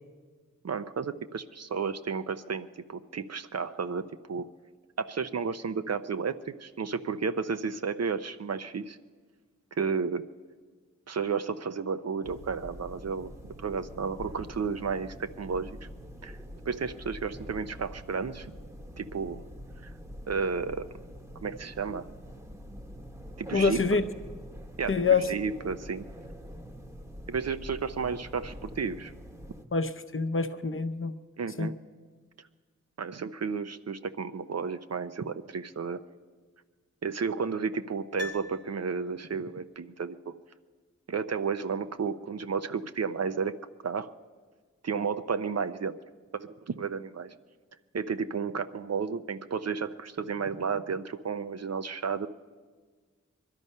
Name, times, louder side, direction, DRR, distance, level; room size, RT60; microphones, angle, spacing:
voice 1, 0.6-4.5 5.0-9.0 9.7-10.3 11.1-13.3 13.6-15.8 16.2-16.4 16.7-18.5 19.0-19.4 19.8-19.9 20.3-20.9 21.4-22.1 23.4-24.0 24.8-25.0 25.3-26.1 27.3-29.1 31.4-31.8 33.0-36.0 37.0-40.4 41.1-43.5 43.8-44.1 44.8-46.0 46.3-47.3 47.9-52.3, right 5 dB, 60° right, 11 dB, 0.6 m, -32 dB
sound 1, 12.2-29.7, equal, 10° right, 1.0 m, -45 dB
voice 2, 23.5-24.0 24.9-25.3 29.7-31.1 31.6-31.7, left 4 dB, 45° left, 9 dB, 0.7 m, -26 dB
Piano, 38.2-39.4 39.7-39.8, left 2 dB, 35° right, 1.1 m, -42 dB
21.5 x 12.5 x 5.5 m, 1.5 s
wide cardioid pair, 90°, 30 cm